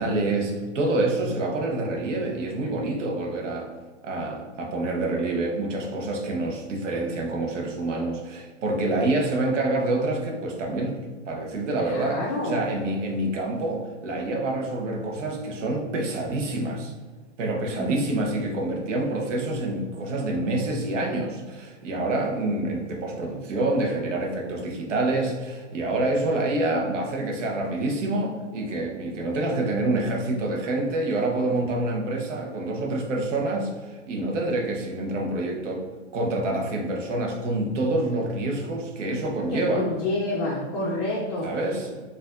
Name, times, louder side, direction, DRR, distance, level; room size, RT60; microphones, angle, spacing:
voice 1, 0.0-3.7 4.0-11.0 11.3-16.9 17.4-35.8 36.1-39.8 41.4-42.0, right 2 dB, 85° right, 1 dB, 0.8 m, -27 dB
voice 2, 11.8-12.6 17.7-18.0 39.5-41.6, left 2 dB, 30° left, -6 dB, 0.4 m, -28 dB
4.3 x 2.5 x 2.4 m, 1.4 s
hypercardioid pair, 155°, 36 cm